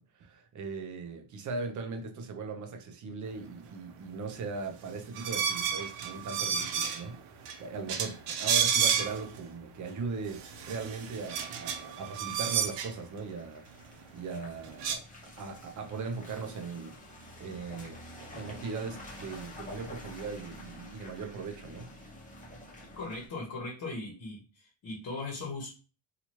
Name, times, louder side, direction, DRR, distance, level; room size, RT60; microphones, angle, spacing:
voice 1, 0.0-13.7 14.1-15.0 15.4-21.9, right 4 dB, 40° right, 0.5 m, -39 dB
sound 1, 5.1-7.1 7.4-7.6 7.9-9.4 9.9-10.0 10.3-12.9 14.3-14.4 14.6-15.0, right 8 dB, 85° right, 0.6 m, -31 dB
Car passing by / Engine, 10.1-23.3, left 1 dB, 15° left, 0.7 m, -49 dB
voice 2, 23.0-25.7, left 3 dB, 45° left, 1.0 m, -38 dB
2.8 x 2.4 x 2.9 m
cardioid pair, 155°, 50 cm